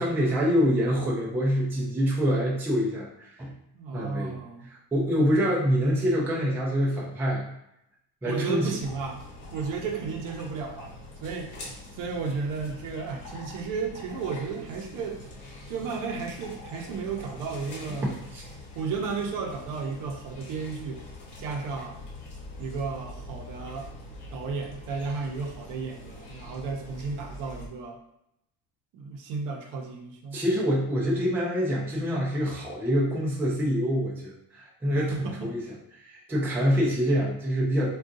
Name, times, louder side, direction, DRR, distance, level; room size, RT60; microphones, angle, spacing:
voice 1, 0.0-3.5 3.9-4.4 4.7-7.4 8.2-8.7 18.0-18.4 30.3-35.6 36.0-37.9, equal, 5° right, -4 dB, 0.3 m, -26 dB
voice 2, 3.7-4.7 8.2-9.2 9.5-15.2 15.7-18.2 18.7-21.0 21.4-22.0 22.6-23.9 24.3-28.0 28.9-30.4 35.0-35.5 36.8-36.9, right 5 dB, 65° right, 2 dB, 0.6 m, -33 dB
sound 1, 8.8-27.7, left 1 dB, 55° left, 1.0 m, -44 dB
3.5 x 2.3 x 2.6 m, 0.81 s
cardioid pair, 180°, 35 cm